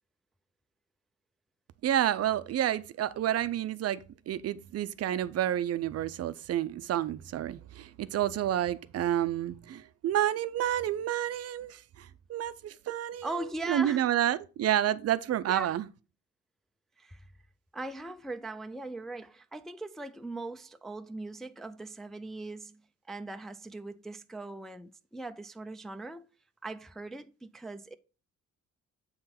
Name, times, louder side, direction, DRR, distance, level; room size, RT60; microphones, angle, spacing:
voice 1, 1.8-13.4 13.7-15.9, right 11 dB, 55° right, 0.5 m, -30 dB
voice 2, 13.2-14.1 15.5-15.7 17.0-17.3 17.7-22.8 23.1-26.3 26.6-27.9, right 2 dB, ahead, 0.3 m, -40 dB
7.8 x 3.8 x 4.2 m
cardioid pair, 90°, 30 cm